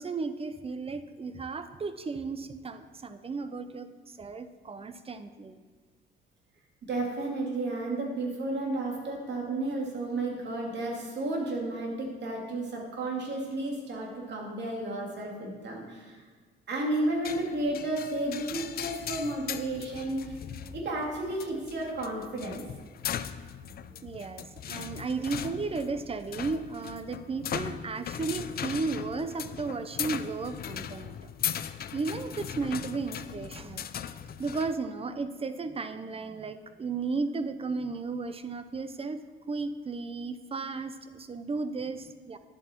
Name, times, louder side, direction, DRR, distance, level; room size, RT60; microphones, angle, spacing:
voice 1, 0.0-5.6 24.0-31.2 31.5-31.6 31.9-33.9 34.4-39.2 39.5-42.4, right 4 dB, 30° right, 11 dB, 0.7 m, -34 dB
voice 2, 6.8-16.2 16.7-20.4 20.7-22.7, right 2 dB, 60° right, -1 dB, 2.5 m, -32 dB
sound 1, 17.2-34.8, left 9 dB, 50° left, 0.5 m, -39 dB
10.5 x 7.4 x 4.5 m, 1.5 s
cardioid pair, 90°, 20 cm